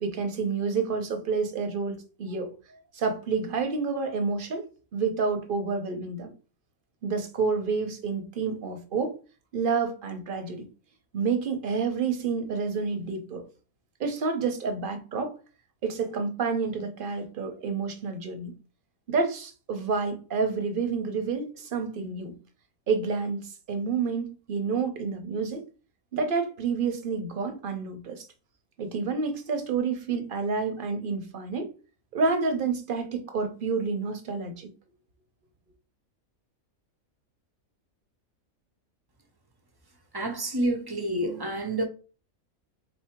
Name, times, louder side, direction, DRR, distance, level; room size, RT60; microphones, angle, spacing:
voice 1, 0.0-2.5 2.9-4.6 4.9-6.3 7.0-9.2 9.5-10.7 11.1-13.5 14.0-15.3 15.8-18.5 19.1-22.3 22.9-25.6 26.1-28.3 28.8-31.7 32.1-34.7, right 5 dB, 45° right, 0.8 m, -29 dB
voice 2, 40.1-41.8, right 1 dB, 25° right, 0.5 m, -28 dB
4.0 x 2.8 x 4.4 m
omnidirectional pair, 1.5 m